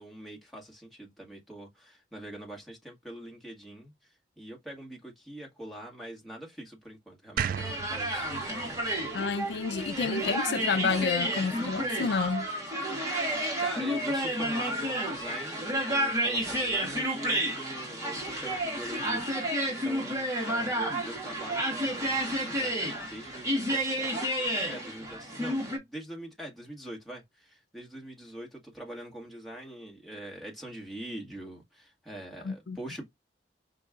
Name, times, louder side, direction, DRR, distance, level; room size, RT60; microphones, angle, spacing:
voice 1, 0.0-8.3 13.3-24.3 24.6-33.1, right 1 dB, ahead, 1.8 m, -44 dB
sound 1, 7.4-10.5, right 8 dB, 50° right, 0.3 m, -36 dB
sound 2, 7.5-25.8, right 1 dB, 20° right, 1.7 m, -31 dB
voice 2, 9.1-12.5 32.4-32.8, left 5 dB, 70° left, 0.4 m, -29 dB
5.2 x 2.6 x 3.6 m
head